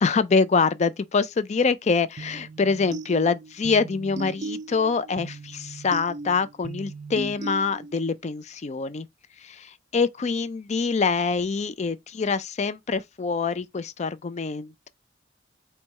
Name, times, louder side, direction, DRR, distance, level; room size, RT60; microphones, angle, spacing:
voice 1, 0.0-9.1 9.4-14.9, left 4 dB, 40° left, 0.4 m, -25 dB
sound 1, 2.2-8.1, right 3 dB, 40° right, 0.4 m, -37 dB
4.1 x 2.3 x 4.5 m
head